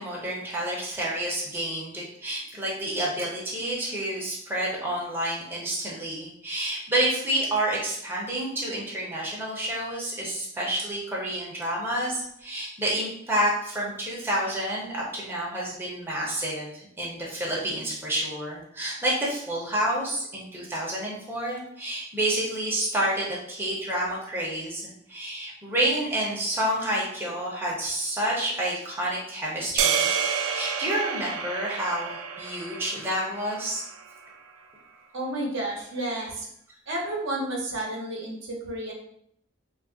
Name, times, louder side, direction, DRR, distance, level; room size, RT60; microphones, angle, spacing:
voice 1, 0.0-30.1 30.5-33.8, right 1 dB, 10° right, -5 dB, 0.7 m, -29 dB
sound 1, 29.8-34.1, right 7 dB, 90° right, 0.3 m, -29 dB
voice 2, 35.1-36.5 36.9-38.9, right 1 dB, 65° right, -2 dB, 0.7 m, -31 dB
2.4 x 2.0 x 3.7 m, 0.70 s
head